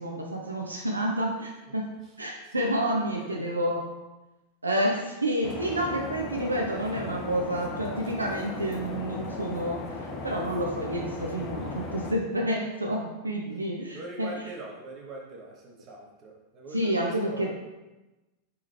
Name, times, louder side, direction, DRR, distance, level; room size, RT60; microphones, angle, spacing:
voice 1, 0.0-1.9 2.2-3.8 4.6-14.3 16.7-17.5, right 1 dB, 80° right, 0 dB, 0.4 m, -29 dB
voice 2, 2.5-3.7 13.9-17.5, right 2 dB, 35° right, -1 dB, 0.9 m, -43 dB
sound 1, 5.4-12.1, left 3 dB, 35° left, 0.5 m, -37 dB
4.2 x 3.6 x 3.2 m, 1.1 s
figure-of-eight pair, 90°, 0 cm